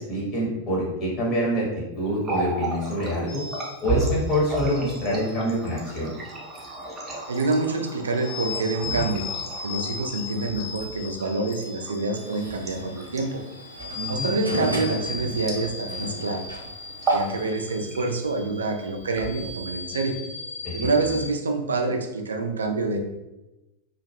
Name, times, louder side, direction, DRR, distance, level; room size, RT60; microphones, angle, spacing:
voice 1, 0.0-3.4 3.8-6.1 13.9-14.3 20.6-20.9, equal, 35° left, -6 dB, 0.9 m, -26 dB
Water tap faucet, 2.1-16.1 16.4-16.6 16.9-17.3 17.7-18.3 19.0-19.8, right 3 dB, 20° right, 0.6 m, -33 dB
sound 1, 3.3-21.3, left 4 dB, 60° left, 0.8 m, -38 dB
voice 2, 7.3-9.2 9.6-13.4 14.1-16.4 17.1-20.1 20.7-23.0, right 3 dB, 70° right, 3 dB, 0.3 m, -27 dB
sound 2, 12.2-17.5, right 1 dB, 90° left, 0.4 m, -35 dB
2.2 x 2.1 x 2.7 m, 0.98 s
figure-of-eight pair, 90°, 0 cm